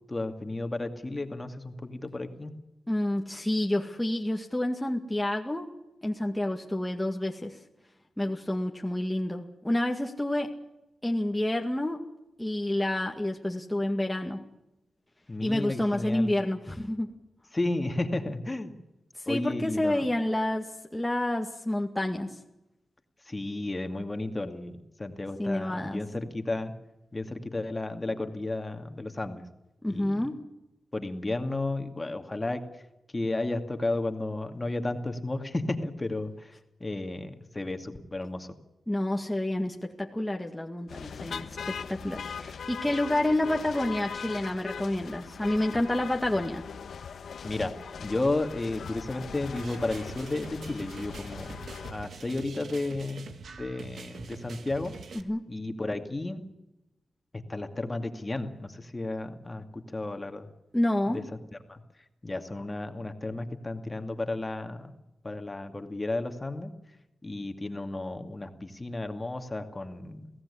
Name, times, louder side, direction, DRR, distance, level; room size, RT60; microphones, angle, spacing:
voice 1, 0.0-2.5 15.3-16.3 17.5-18.8 19.3-20.1 23.3-26.7 27.1-29.5 29.9-30.3 30.9-32.8 33.1-38.5 47.4-51.6 51.9-54.9 55.5-56.4 57.3-60.5 61.1-61.2 61.5-61.8 62.2-64.9 65.2-66.7 67.2-70.3, left 2 dB, 25° left, 6 dB, 2.4 m, -33 dB
voice 2, 2.9-5.7 6.0-7.6 8.2-10.6 11.0-12.0 12.4-14.4 15.4-17.1 19.1-22.4 25.4-26.0 29.8-30.4 38.9-46.6 55.1-55.5 60.7-61.2, left 1 dB, 10° left, 1 dB, 2.0 m, -29 dB
sound 1, 40.9-51.9, left 6 dB, 80° left, 1.3 m, -40 dB
sound 2, 49.6-55.2, right 5 dB, 75° right, 1.7 m, -44 dB
23.0 x 16.5 x 10.0 m, 0.95 s
cardioid pair, 75°, 0 cm